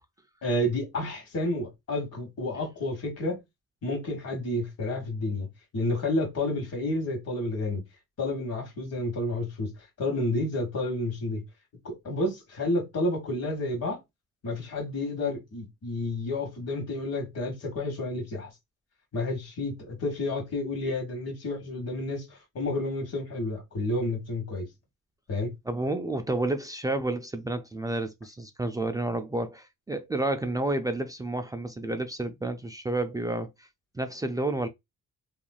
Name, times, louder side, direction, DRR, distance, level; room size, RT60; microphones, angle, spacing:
voice 1, 0.4-3.4 3.8-5.5 5.7-7.8 8.2-9.7 10.0-11.4 11.8-14.0 14.4-18.5 19.1-24.7 25.3-25.5, left 1 dB, 55° left, 1.4 m, -30 dB
voice 2, 25.7-33.7 33.9-34.7, right 2 dB, 15° right, 0.3 m, -30 dB
3.1 x 2.4 x 2.3 m
cardioid pair, 90°, 30 cm